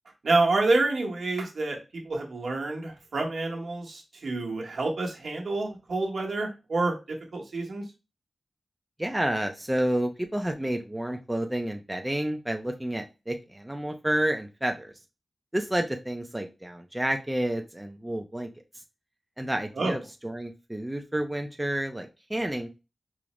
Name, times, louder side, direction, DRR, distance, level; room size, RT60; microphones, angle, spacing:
voice 1, 0.2-7.8 19.7-20.0, right 2 dB, 70° right, 0 dB, 0.9 m, -28 dB
voice 2, 9.0-14.9 15.5-18.5 19.4-22.7, right 1 dB, 10° right, 4 dB, 0.4 m, -30 dB
4.8 x 2.0 x 3.0 m, 0.28 s
wide cardioid pair, 115°, 0 cm